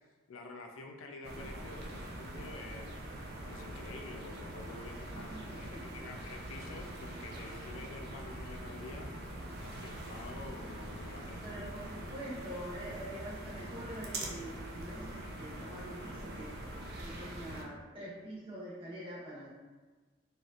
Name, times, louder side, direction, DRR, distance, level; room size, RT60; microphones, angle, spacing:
voice 1, 0.3-3.0 3.5-9.1 9.6-11.6, left 3 dB, 75° left, 3 dB, 0.4 m, -48 dB
sound 1, 1.2-17.6, right 1 dB, 50° right, 0.5 m, -43 dB
voice 2, 5.1-6.0 11.4-19.5, equal, 25° right, -9 dB, 1.3 m, -45 dB
4.0 x 3.3 x 2.4 m, 1.3 s
head